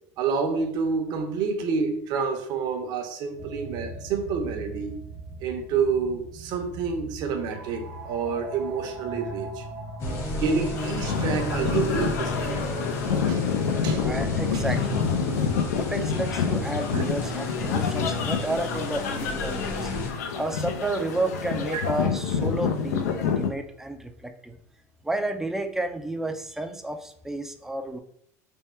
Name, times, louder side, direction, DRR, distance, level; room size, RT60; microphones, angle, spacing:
voice 1, 0.2-5.0 5.4-9.6 10.3-12.8 13.3-13.4 13.8-14.1 14.5-14.6 16.9-17.0 21.7-21.8, right 5 dB, 55° right, 5 dB, 0.7 m, -28 dB
sound 1, 3.4-16.8, right 1 dB, 85° right, 0.8 m, -39 dB
sound 2, 10.0-20.1, left 1 dB, 40° left, 1.2 m, -33 dB
sound 3, 10.8-23.5, left 6 dB, 85° left, 0.6 m, -28 dB
voice 2, 14.0-15.1 15.8-19.9 20.4-24.6 25.0-28.0, right 2 dB, 5° right, 6 dB, 0.4 m, -31 dB
3.5 x 2.1 x 4.2 m, 0.68 s
supercardioid pair, 115°, 9 cm